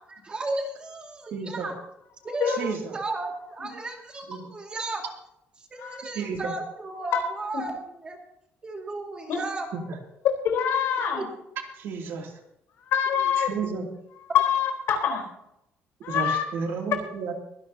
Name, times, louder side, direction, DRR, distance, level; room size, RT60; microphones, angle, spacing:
voice 1, 0.1-1.7 2.2-5.0 5.6-8.2 8.6-9.7 11.1-11.2, right 2 dB, 20° right, 2 dB, 2.2 m, -34 dB
voice 2, 1.3-1.7 2.5-3.0 4.3-4.4 6.0-6.5 9.7-10.0 11.8-12.3 13.4-13.8 16.1-17.3, right 5 dB, 60° right, 2 dB, 2.6 m, -32 dB
voice 3, 2.2-2.6 5.8-6.0 7.1-7.2 7.5-7.6 9.3-9.4 10.4-11.3 12.8-13.5 14.3-15.3 16.0-16.4, left 8 dB, 65° left, 3 dB, 3.9 m, -25 dB
23.0 x 11.5 x 2.8 m, 0.81 s
cardioid pair, 175°, 4 cm